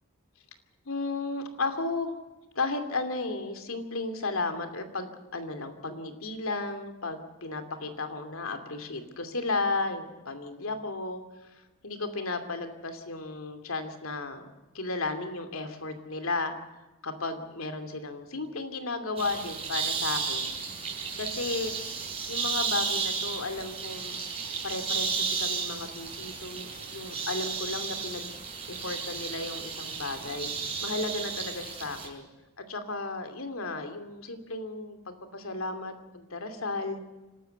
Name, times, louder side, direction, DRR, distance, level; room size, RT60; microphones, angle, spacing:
voice 1, 0.9-2.2 2.5-11.2 11.8-14.5 14.7-16.5 17.0-20.5 21.2-21.7 22.3-24.2 24.6-28.3 28.7-30.5 30.8-32.3 32.6-37.0, left 3 dB, 75° left, 7 dB, 2.7 m, -34 dB
sound 1, 19.2-32.1, right 5 dB, 30° right, 6.2 m, -33 dB
28.0 x 13.0 x 7.9 m, 1.1 s
head